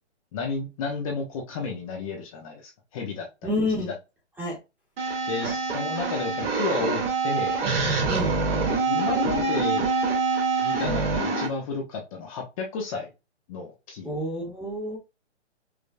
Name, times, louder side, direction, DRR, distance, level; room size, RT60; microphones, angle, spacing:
voice 1, 0.3-3.6 5.3-7.6 8.9-9.8 10.6-13.1 13.5-14.1, left 4 dB, 30° left, 1.1 m, -32 dB
voice 2, 3.4-3.9 4.4-4.6 8.1-8.4 14.0-15.0, left 1 dB, 5° right, 1.4 m, -28 dB
sound 1, 5.0-11.5, right 4 dB, 55° right, 2.4 m, -25 dB
5.5 x 3.2 x 2.3 m
hypercardioid pair, 145°, 35 cm